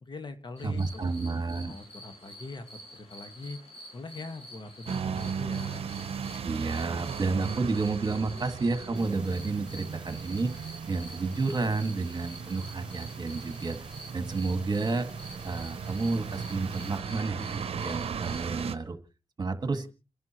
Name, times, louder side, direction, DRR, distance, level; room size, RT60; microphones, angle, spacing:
voice 1, 0.0-2.7 2.9-3.6 3.9-5.8, left 3 dB, 50° left, 8 dB, 1.6 m, -42 dB
sound 1, 0.6-18.7, equal, 85° left, 6.2 m, -49 dB
voice 2, 0.6-1.7 6.4-13.8 14.1-15.1 15.4-19.0 19.4-19.9, right 3 dB, 45° right, 8 dB, 1.8 m, -31 dB
sound 2, 4.9-18.7, right 7 dB, 80° right, 0.7 m, -37 dB
sound 3, 8.9-17.0, right 2 dB, 10° right, 4.9 m, -52 dB
30.0 x 11.0 x 3.0 m, 0.34 s
cardioid pair, 75°, 10 cm